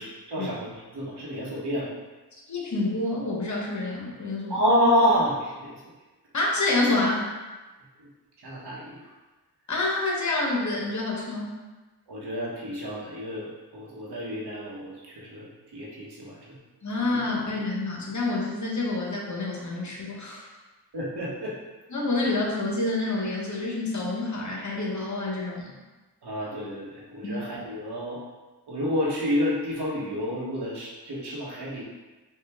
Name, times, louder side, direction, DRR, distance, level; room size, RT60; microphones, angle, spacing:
voice 1, 0.0-1.9 4.5-5.8 8.0-8.1 8.4-9.0 12.1-16.6 20.9-21.6 26.2-28.2 28.7-31.8, equal, 70° right, -5 dB, 1.2 m, -29 dB
voice 2, 2.5-4.7 6.3-7.3 9.7-11.6 16.8-20.5 21.9-25.7 27.2-27.4, left 2 dB, 45° left, -2 dB, 1.0 m, -28 dB
4.4 x 2.4 x 3.5 m, 1.2 s
cardioid pair, 65°, 42 cm